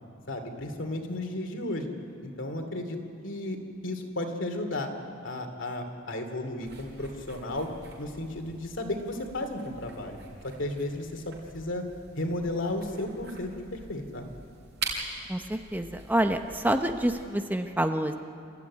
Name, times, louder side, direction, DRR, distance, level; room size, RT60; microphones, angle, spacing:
voice 1, 0.3-1.9 2.2-3.0 3.2-3.6 3.8-4.9 5.2-7.7 8.0-10.2 10.4-11.8 12.2-14.3, left 1 dB, 65° left, 5 dB, 2.6 m, -33 dB
sound 1, 6.6-17.2, right 3 dB, 55° right, 6.1 m, -43 dB
voice 2, 15.3-18.2, right 1 dB, 10° right, 6 dB, 0.8 m, -27 dB
28.5 x 14.5 x 9.7 m, 2.5 s
head